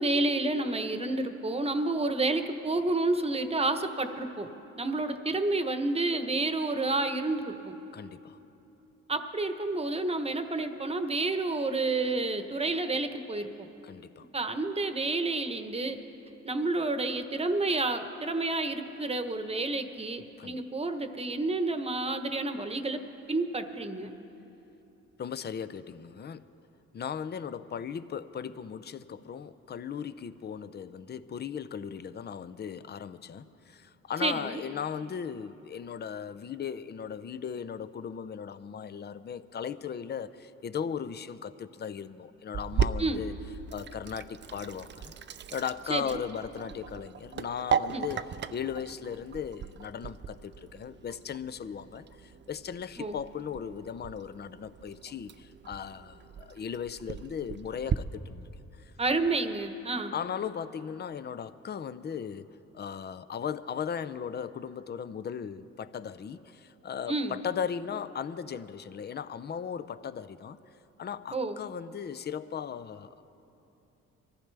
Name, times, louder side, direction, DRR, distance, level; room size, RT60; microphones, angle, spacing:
voice 1, 0.0-7.7 9.1-13.7 14.3-16.0 16.4-23.0 23.3-24.1 34.2-34.6 43.0-43.2 45.9-46.2 47.9-48.0 53.0-53.2 59.0-60.1 67.1-67.4 71.3-71.6, right 2 dB, 20° right, 8 dB, 1.1 m, -30 dB
voice 2, 7.9-8.4 13.8-14.3 20.4-20.6 25.2-26.5 26.9-43.3 43.7-45.1 45.5-58.5 58.8-58.9 60.1-70.6 71.0-73.1, left 7 dB, 35° left, 14 dB, 0.6 m, -37 dB
Sink (filling or washing), 42.5-58.0, right 7 dB, 35° right, 0.5 m, -37 dB
24.0 x 14.5 x 3.4 m, 3.0 s
cardioid pair, 90°, 30 cm